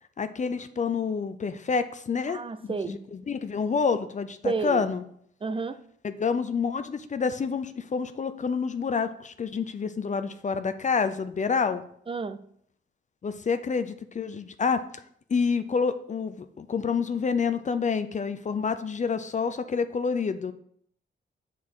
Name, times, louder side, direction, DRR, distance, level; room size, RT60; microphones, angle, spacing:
voice 1, 0.2-5.0 6.0-11.8 13.2-14.8 15.3-20.5, left 5 dB, 40° left, 11 dB, 0.5 m, -28 dB
voice 2, 2.3-3.0 4.4-4.9 5.4-5.8 12.1-12.4, right 4 dB, 25° right, 11 dB, 0.5 m, -30 dB
7.4 x 4.2 x 4.6 m, 0.65 s
wide cardioid pair, 110°, 20 cm